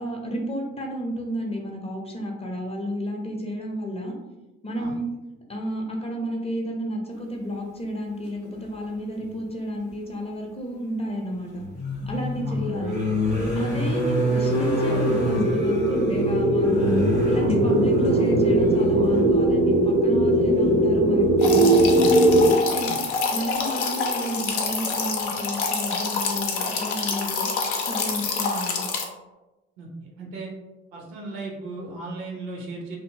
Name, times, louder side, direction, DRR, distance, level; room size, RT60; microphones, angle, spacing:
voice 1, 0.0-4.2 4.6-5.1 5.5-11.6 12.1-12.9 13.5-16.9 17.3-21.9 22.3-23.0 23.3-27.5 27.8-28.9, equal, 15° left, 0 dB, 0.6 m, -31 dB
sound 1, 9.2-9.3 11.5-19.2 20.4-20.5 20.8-21.0, left 1 dB, 85° right, 1.2 m, -26 dB
sound 2, 14.2-22.5, right 1 dB, 30° right, 0.5 m, -20 dB
sound 3, 21.4-29.0, left 4 dB, 75° left, 0.5 m, -27 dB
voice 2, 22.7-23.0 29.8-30.5 30.9-33.0, right 3 dB, 65° right, -1 dB, 0.7 m, -37 dB
2.6 x 2.6 x 2.7 m, 1.1 s
figure-of-eight pair, 40°, 34 cm